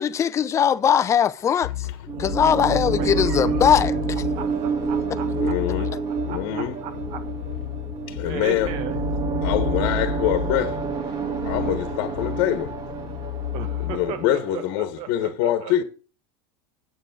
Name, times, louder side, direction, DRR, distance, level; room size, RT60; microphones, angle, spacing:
voice 1, 0.0-1.9 2.2-4.2 5.5-5.6, left 8 dB, 25° left, 0.6 m, -20 dB
sound 1, 1.6-14.2, left 14 dB, 80° left, 0.7 m, -33 dB
sound 2, 2.1-14.7, right 4 dB, 30° right, 1.7 m, -28 dB
voice 2, 2.9-3.6 4.3-5.5 6.3-7.3 8.1-9.0 13.5-14.6 15.0-15.7, right 9 dB, 50° right, 1.5 m, -36 dB
voice 3, 5.4-6.0 6.2-6.8 8.1-8.8 9.4-10.8 11.4-12.8 13.8-15.8, left 12 dB, 55° left, 1.4 m, -25 dB
8.6 x 6.9 x 6.5 m
supercardioid pair, 135°, 13 cm